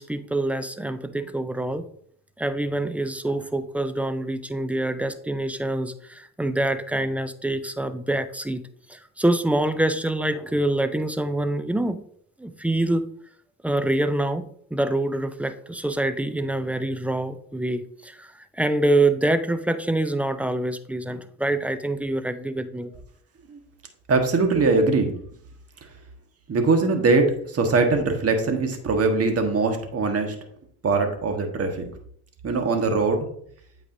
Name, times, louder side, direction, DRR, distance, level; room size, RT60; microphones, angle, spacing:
voice 1, 0.0-1.9 2.4-8.6 8.9-12.0 12.4-13.1 13.6-14.4 14.7-22.9, right 1 dB, 5° right, 12 dB, 0.4 m, -25 dB
voice 2, 24.1-25.1 26.5-30.3 30.8-31.8 32.4-33.3, right 3 dB, 35° right, 5 dB, 1.4 m, -21 dB
8.3 x 4.9 x 2.6 m, 0.63 s
supercardioid pair, 75°, 41 cm